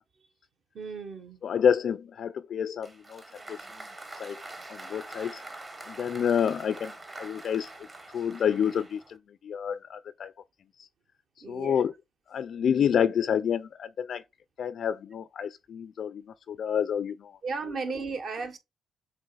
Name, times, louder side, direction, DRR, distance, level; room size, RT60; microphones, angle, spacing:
voice 1, 0.7-1.4 11.4-11.9 17.4-18.6, right 4 dB, 55° right, 1.2 m, -35 dB
voice 2, 1.4-3.2 3.5-3.6 4.2-4.4 4.7-5.4 5.9-6.9 7.2-7.7 8.1-9.2 9.4-10.3 10.8-10.9 11.5-11.9 12.3-14.2 14.6-17.3, left 8 dB, 60° left, 0.3 m, -28 dB
Applause, 2.8-9.2, right 2 dB, 25° right, 1.1 m, -44 dB
7.3 x 3.0 x 2.3 m
cardioid pair, 90°, 0 cm